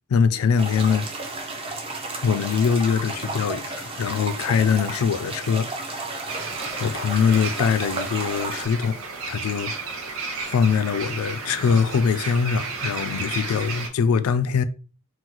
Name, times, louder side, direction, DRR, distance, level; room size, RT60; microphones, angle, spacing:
voice 1, 0.1-1.1 2.2-6.0 6.8-9.7 10.4-14.6, left 6 dB, 80° left, 0.3 m, -23 dB
sound 1, 0.6-8.7, right 2 dB, 25° right, 0.5 m, -33 dB
sound 2, 6.3-13.9, right 4 dB, 75° right, 0.7 m, -33 dB
3.8 x 2.2 x 2.9 m
head